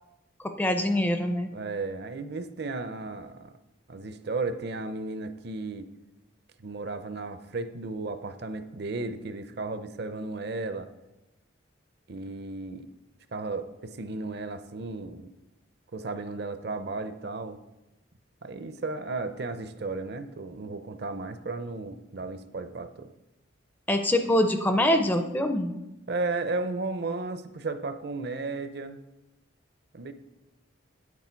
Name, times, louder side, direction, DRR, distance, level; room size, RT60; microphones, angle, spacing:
voice 1, 0.4-1.5 23.9-25.7, left 1 dB, 10° left, 7 dB, 0.4 m, -24 dB
voice 2, 1.5-3.5 3.9-5.9 6.6-10.9 12.1-12.9 13.3-15.3 15.9-17.6 18.4-23.1 26.1-29.0 29.9-30.1, right 3 dB, 50° right, 10 dB, 0.5 m, -34 dB
9.1 x 8.3 x 4.5 m, 0.99 s
head